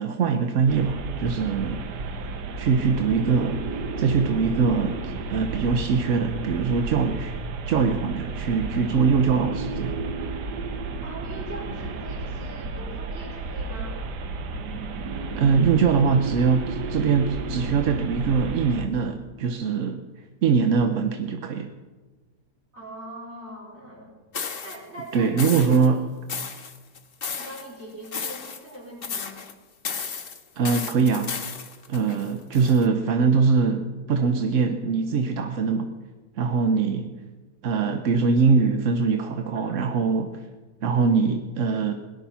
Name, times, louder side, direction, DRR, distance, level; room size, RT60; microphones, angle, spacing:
voice 1, 0.0-1.8 2.6-7.4 7.7-10.0 15.4-20.0 20.4-21.7 25.1-26.0 30.6-31.3 31.9-35.9 36.4-37.1 37.6-40.5 40.8-41.9, right 5 dB, 55° right, 7 dB, 1.0 m, -22 dB
sound 1, 0.7-18.9, right 4 dB, 75° right, 1.5 m, -32 dB
voice 2, 11.0-14.0 22.7-24.1 24.6-25.9 27.3-29.4 39.7-39.8, right 1 dB, 40° right, -3 dB, 4.4 m, -41 dB
sound 2, 24.3-24.8 25.4-25.9 26.3-27.7 28.0-28.8 29.0-29.5 29.8-32.9, left 5 dB, 40° left, 1.0 m, -33 dB
17.5 x 11.0 x 5.7 m, 1.3 s
omnidirectional pair, 1.8 m